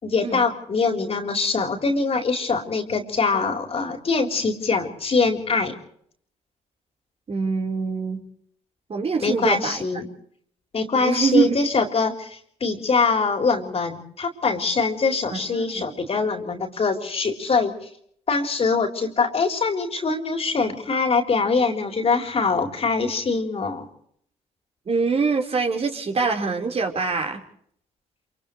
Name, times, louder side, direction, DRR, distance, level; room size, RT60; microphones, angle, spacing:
voice 1, 0.0-5.8 9.2-10.1 10.7-17.9 18.3-23.9, left 4 dB, 40° left, 3 dB, 4.1 m, -23 dB
voice 2, 7.3-8.3 8.9-9.8 11.0-11.5 15.3-15.8 24.9-27.4, right 4 dB, 40° right, 3 dB, 4.6 m, -24 dB
29.5 x 27.5 x 3.3 m, 0.66 s
hypercardioid pair, 50°, 16 cm